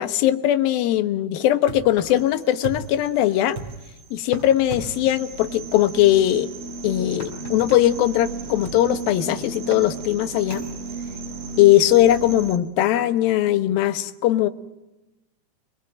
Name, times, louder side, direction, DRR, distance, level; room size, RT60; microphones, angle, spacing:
voice 1, 0.0-3.6 4.1-6.5 6.8-10.6 11.6-14.5, left 13 dB, 70° left, 10 dB, 2.4 m, -20 dB
sound 1, 1.7-9.4 9.8-12.5, left 1 dB, 25° left, 6.4 m, -46 dB
sound 2, 1.7-2.1 2.6-3.1 3.5-4.0 4.7-5.1 5.9-6.1 7.6-7.9 8.6-9.0 9.7-9.9 10.6-10.9, right 3 dB, 30° right, 3.1 m, -37 dB
sound 3, 2.2-12.6, right 3 dB, 55° right, 3.8 m, -35 dB
28.0 x 20.5 x 9.2 m, 1.0 s
omnidirectional pair, 5.4 m